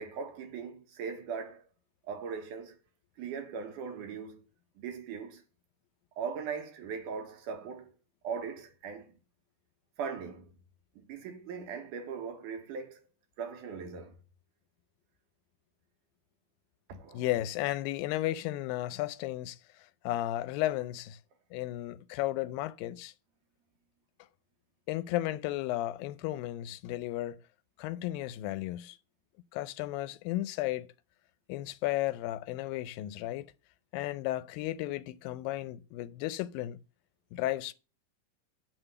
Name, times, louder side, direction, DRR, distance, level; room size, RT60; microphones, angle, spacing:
voice 1, 0.0-1.6 2.1-2.8 3.2-4.4 4.8-5.4 6.2-7.9 8.2-9.1 10.0-10.6 11.0-13.0 13.4-14.2 16.9-17.2, right 6 dB, 70° right, 2.6 m, -39 dB
voice 2, 17.1-19.6 20.0-21.2 21.5-23.1 24.9-27.4 27.8-29.0 29.5-30.9 31.5-33.5 33.9-36.8 37.3-37.7, left 15 dB, 90° left, 2.3 m, -34 dB
10.0 x 3.7 x 6.7 m
omnidirectional pair, 4.0 m